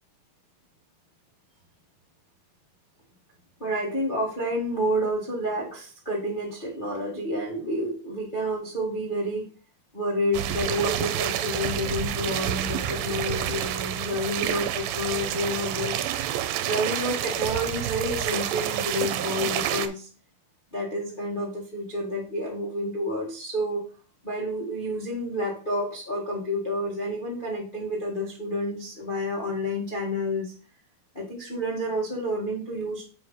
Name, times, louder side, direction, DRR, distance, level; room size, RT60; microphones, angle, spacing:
voice 1, 3.6-9.5 9.9-16.0 16.6-20.1 20.7-23.8 24.2-30.5 31.1-33.0, equal, 85° left, -5 dB, 0.4 m, -29 dB
sound 1, 10.3-19.9, right 11 dB, 85° right, 2.4 m, -28 dB
7.4 x 3.2 x 5.6 m, 0.37 s
omnidirectional pair, 4.3 m